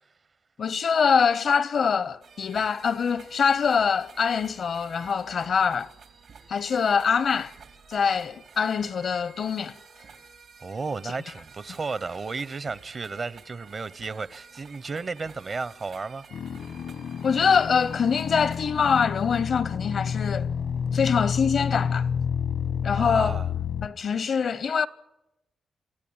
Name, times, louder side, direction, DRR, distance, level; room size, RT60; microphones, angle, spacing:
voice 1, 0.6-5.9 6.5-7.5 7.9-9.8 17.2-20.5 20.9-22.1 22.8-23.4 23.8-24.9, left 6 dB, 70° left, 0.7 m, -24 dB
sound 1, 2.2-19.1, right 5 dB, 80° right, 2.5 m, -51 dB
voice 2, 10.6-16.2 22.9-23.5, right 4 dB, 50° right, 0.8 m, -33 dB
sound 2, 16.3-23.9, left 7 dB, 85° left, 1.2 m, -29 dB
27.0 x 14.0 x 8.7 m
cardioid pair, 60°, 0 cm